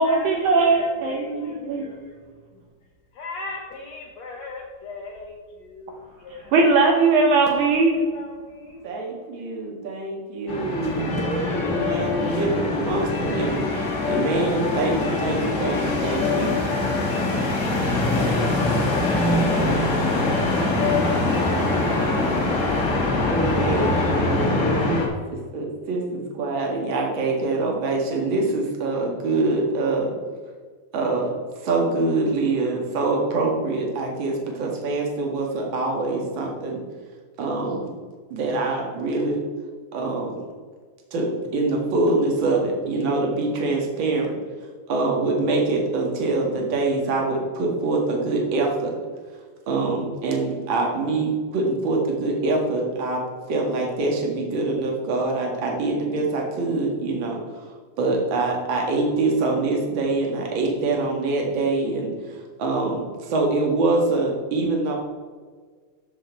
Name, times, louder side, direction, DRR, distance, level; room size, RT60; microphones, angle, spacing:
voice 1, 0.0-1.8 6.5-8.0, right 3 dB, 70° right, 1 dB, 1.9 m, -19 dB
voice 2, 3.2-5.3 5.8-5.9 6.2-6.3 7.9-8.3, left 3 dB, 80° left, 0 dB, 1.5 m, -36 dB
voice 3, 8.8-13.6 14.0-16.6 23.3-25.0 25.3-30.1 30.9-31.3 31.6-36.8 37.4-37.9 38.3-39.4 39.9-40.4 41.1-44.3 44.9-48.9 49.7-53.2 53.5-57.7 58.0-64.9, right 3 dB, 45° right, 0 dB, 1.8 m, -24 dB
sound 1, 10.5-25.1, left 2 dB, 45° left, 0.9 m, -23 dB
13.0 x 6.4 x 4.5 m, 1.5 s
omnidirectional pair, 4.4 m